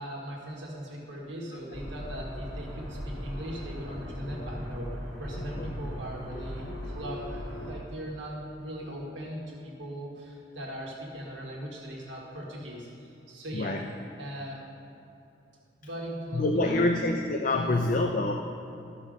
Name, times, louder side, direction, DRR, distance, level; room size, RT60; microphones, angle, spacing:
voice 1, 0.0-13.8 14.2-14.6 15.8-17.0 17.5-17.9, equal, 80° right, -3 dB, 1.7 m, -39 dB
sound 1, 1.7-7.7, equal, 65° right, 2.5 m, -38 dB
voice 2, 5.4-5.7 13.5-13.8 16.3-18.3, left 2 dB, 45° left, 3 dB, 0.5 m, -26 dB
13.5 x 6.2 x 5.2 m, 2.8 s
head